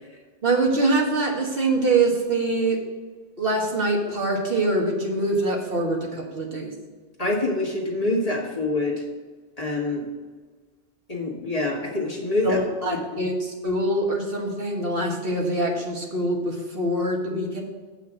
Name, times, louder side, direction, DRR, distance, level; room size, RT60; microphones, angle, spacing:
voice 1, 0.4-2.8 3.4-6.7 12.4-17.6, right 2 dB, 55° right, 0 dB, 1.7 m, -24 dB
voice 2, 7.2-9.0 9.6-10.0 11.1-13.2, left 2 dB, 35° left, -2 dB, 1.8 m, -26 dB
8.1 x 5.8 x 6.2 m, 1.4 s
omnidirectional pair, 1.1 m